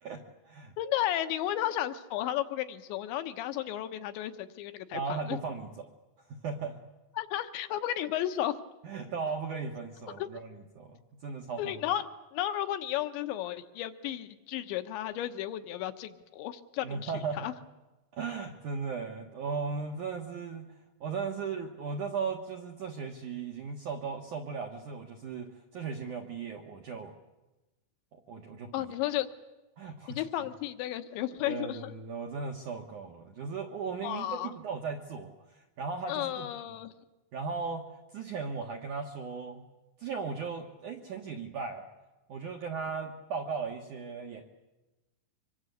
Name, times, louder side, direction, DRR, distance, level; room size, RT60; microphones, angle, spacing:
voice 1, 0.0-0.7 4.9-5.9 6.3-6.8 8.8-11.8 16.8-17.4 18.1-20.7 21.0-25.5 25.7-27.2 28.1-28.7 29.8-30.2 31.4-36.5 37.3-37.9 38.1-39.6 40.0-41.8 42.3-44.5, right 5 dB, 65° right, 3 dB, 2.0 m, -37 dB
voice 2, 0.8-5.4 7.2-8.6 10.2-10.3 11.6-12.1 12.3-17.5 28.7-29.3 30.1-31.9 34.0-34.5 36.1-36.9, left 12 dB, 75° left, 10 dB, 3.1 m, -33 dB
25.5 x 23.5 x 8.1 m, 1.1 s
omnidirectional pair, 5.8 m